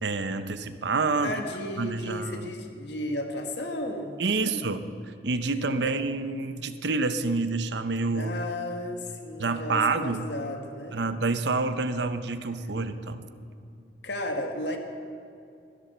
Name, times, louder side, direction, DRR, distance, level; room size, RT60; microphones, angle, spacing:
voice 1, 0.0-1.3 1.8-2.5 4.2-4.8 5.2-8.3 9.4-10.3 10.9-13.3, right 3 dB, 70° right, 10 dB, 0.8 m, -28 dB
voice 2, 1.2-4.2 4.5-4.7 5.8-5.9 8.1-11.0 13.3-13.4 14.0-14.8, left 1 dB, 70° left, 4 dB, 1.6 m, -34 dB
20.5 x 12.5 x 4.4 m, 2.5 s
head